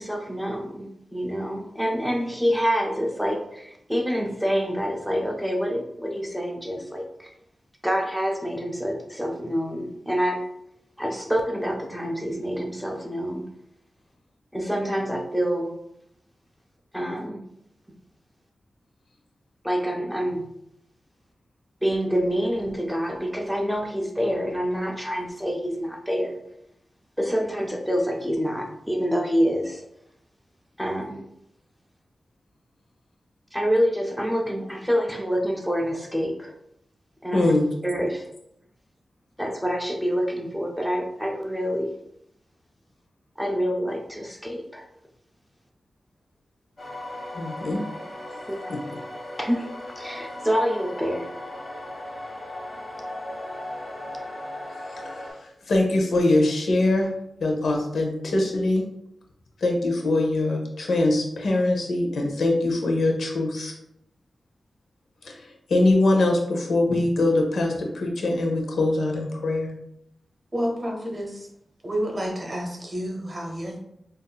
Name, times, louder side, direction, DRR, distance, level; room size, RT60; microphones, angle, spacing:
voice 1, 0.0-7.3 7.8-10.5 11.0-13.5 14.5-15.8 16.9-17.4 19.6-20.4 21.8-26.4 27.2-29.9 30.8-31.2 33.5-36.5 37.2-37.5 37.8-38.3 39.4-42.0 43.4-44.8 48.5-48.7 49.4-49.7 50.0-51.3, equal, 5° right, 1 dB, 0.4 m, -27 dB
voice 2, 37.3-37.7 47.3-47.8 48.3-48.4 48.7-48.8 54.9-57.1 57.4-58.8 59.6-63.7 65.2-69.7, left 2 dB, 85° left, 1 dB, 0.7 m, -23 dB
sound 1, 46.8-55.3, left 1 dB, 40° left, 1.4 m, -37 dB
voice 3, 70.5-71.5 71.8-73.8, equal, 35° right, 0 dB, 1.0 m, -29 dB
5.2 x 2.5 x 2.3 m, 0.78 s
wide cardioid pair, 105°, 0 cm